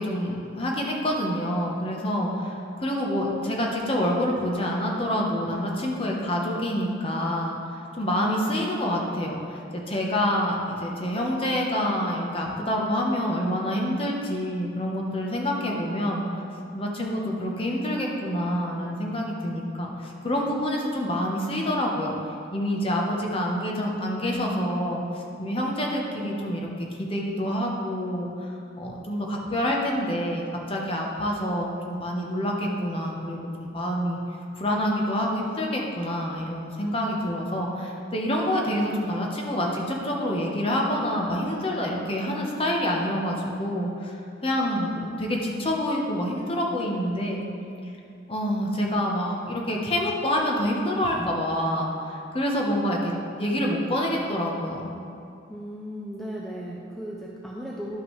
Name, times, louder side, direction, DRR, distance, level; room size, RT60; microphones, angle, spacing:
voice 1, 0.0-16.2 16.7-22.2 22.5-34.2 34.6-44.2 44.4-47.4 48.3-54.9, equal, 30° left, -1 dB, 1.0 m, -27 dB
voice 2, 48.8-49.1 51.0-51.3 55.5-58.0, equal, ahead, -4 dB, 0.5 m, -37 dB
11.0 x 5.8 x 3.2 m, 2.5 s
head